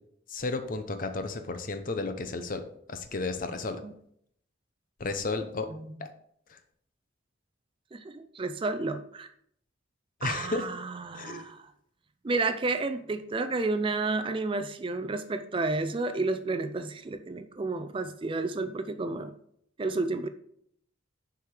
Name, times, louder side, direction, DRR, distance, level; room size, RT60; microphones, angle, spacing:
voice 1, 0.3-3.8 5.0-5.7 6.0-6.1 10.2-10.7 11.1-11.5, left 3 dB, 40° left, 8 dB, 0.7 m, -33 dB
voice 2, 7.9-9.3 10.2-11.7 12.2-19.3 19.8-20.3, right 3 dB, 25° right, 9 dB, 0.4 m, -31 dB
6.5 x 4.9 x 4.8 m, 0.68 s
head